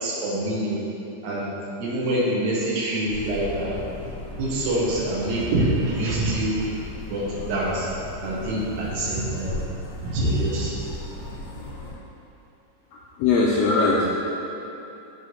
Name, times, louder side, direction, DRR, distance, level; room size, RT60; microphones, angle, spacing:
voice 1, 0.0-0.8 1.2-1.5 1.8-3.7 4.4-6.6 7.1-7.9 8.2-9.5 10.0-10.7, right 1 dB, 75° right, -5 dB, 2.3 m, -25 dB
sound 1, 3.1-11.9, left 2 dB, 60° left, 2.8 m, -36 dB
voice 2, 13.2-14.1, left 3 dB, 80° left, -4 dB, 1.5 m, -19 dB
7.8 x 3.1 x 4.0 m, 3.0 s
omnidirectional pair, 3.3 m